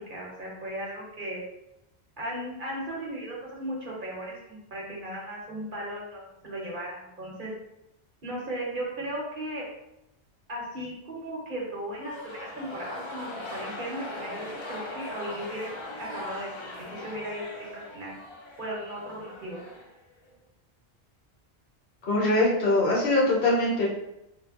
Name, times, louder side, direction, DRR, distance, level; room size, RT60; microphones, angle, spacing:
voice 1, 0.1-1.4 2.2-7.5 8.2-9.7 10.5-15.7 16.0-16.5 16.9-18.1 18.6-19.6, right 1 dB, 55° right, -3 dB, 0.8 m, -36 dB
sound 1, 11.9-20.3, left 2 dB, 40° left, 0.4 m, -40 dB
voice 2, 22.0-23.9, left 2 dB, 70° left, -5 dB, 1.1 m, -22 dB
3.3 x 2.1 x 2.4 m, 0.87 s
omnidirectional pair, 1.1 m